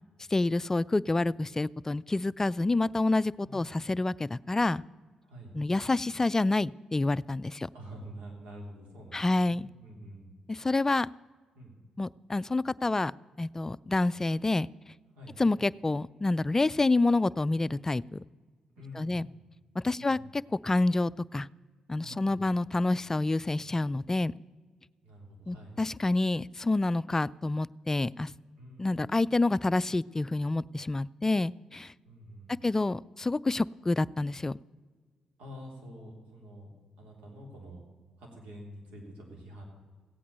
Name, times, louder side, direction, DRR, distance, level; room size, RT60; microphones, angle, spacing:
voice 1, 0.3-4.8 5.5-7.7 9.1-9.7 10.5-11.1 12.0-13.1 13.4-14.7 15.4-18.2 19.0-19.3 19.8-21.5 21.9-24.3 25.5-28.3 28.8-31.9 32.6-34.6, left 2 dB, 20° left, 18 dB, 0.3 m, -28 dB
voice 2, 5.2-5.6 7.7-10.3 11.5-11.8 15.1-15.4 18.8-19.2 20.0-20.2 22.0-22.5 25.0-25.8 28.6-29.0 32.0-32.6 35.4-36.7 37.0-37.8 38.2-39.6, equal, 80° right, 0 dB, 3.3 m, -47 dB
15.5 x 8.5 x 6.8 m, 1.5 s
supercardioid pair, 55°, 2 cm